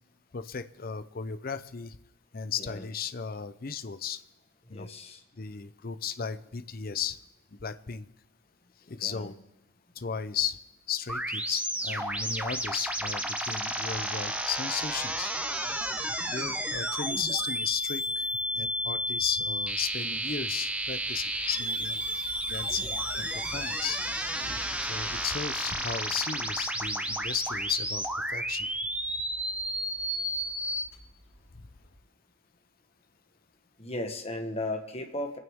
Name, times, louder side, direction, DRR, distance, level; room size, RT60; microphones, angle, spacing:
voice 1, 0.3-2.0 2.3-4.2 4.7-4.9 5.4-7.2 7.6-8.1 8.9-9.3 10.0-10.6 10.9-15.3 16.3-18.3 18.5-22.0 22.5-24.0 24.9-28.7 31.5-31.7, left 7 dB, 45° left, 11 dB, 0.6 m, -35 dB
voice 2, 4.7-5.2 9.0-9.3 33.8-35.4, left 1 dB, 30° left, 5 dB, 1.3 m, -36 dB
sound 1, 11.1-30.8, right 1 dB, 5° right, 0.8 m, -32 dB
sound 2, 12.0-32.0, equal, 90° left, 2.7 m, -53 dB
26.5 x 9.2 x 3.6 m, 1.0 s
head